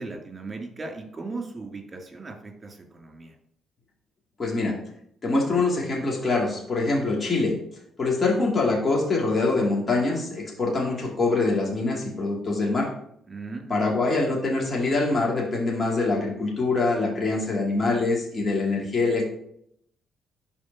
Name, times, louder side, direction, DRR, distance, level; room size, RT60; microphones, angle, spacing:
voice 1, 0.0-3.3 13.3-14.1, right 3 dB, 30° right, 2 dB, 2.5 m, -37 dB
voice 2, 4.4-4.7 5.2-7.6 8.0-12.9 13.7-19.2, left 3 dB, 35° left, -2 dB, 2.4 m, -24 dB
11.5 x 4.3 x 2.8 m, 0.70 s
hypercardioid pair, 45°, 0 cm